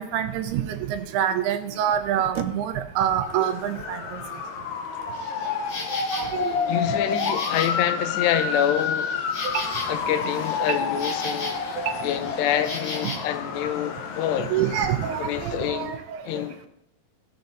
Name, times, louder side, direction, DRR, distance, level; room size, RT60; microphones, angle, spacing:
voice 1, 0.0-4.0 6.1-6.8 9.4-9.6 10.7-10.8 11.8-12.0 13.0-13.1 14.5-16.2, right 9 dB, 80° right, 2.6 m, -26 dB
Motor vehicle (road) / Siren, 3.2-15.9, left 5 dB, 75° left, 2.2 m, -30 dB
Insect, 5.1-13.2, left 3 dB, 60° left, 3.5 m, -37 dB
voice 2, 6.7-9.1 9.9-11.6 12.0-14.5 15.2-15.9 16.3-16.7, left 10 dB, 90° left, 2.8 m, -26 dB
16.5 x 7.1 x 2.6 m
omnidirectional pair, 4.7 m